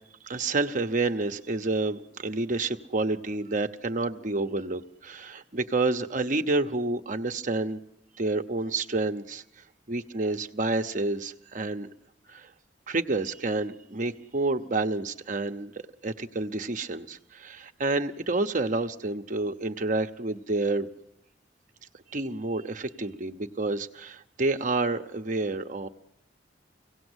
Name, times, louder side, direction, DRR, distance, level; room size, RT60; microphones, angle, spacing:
voice 1, 0.2-7.8 8.2-9.4 9.9-11.9 12.3-12.5 12.9-15.7 16.0-20.9 22.1-25.9, right 2 dB, 45° right, 7 dB, 0.9 m, -29 dB
24.5 x 17.5 x 8.1 m, 0.83 s
head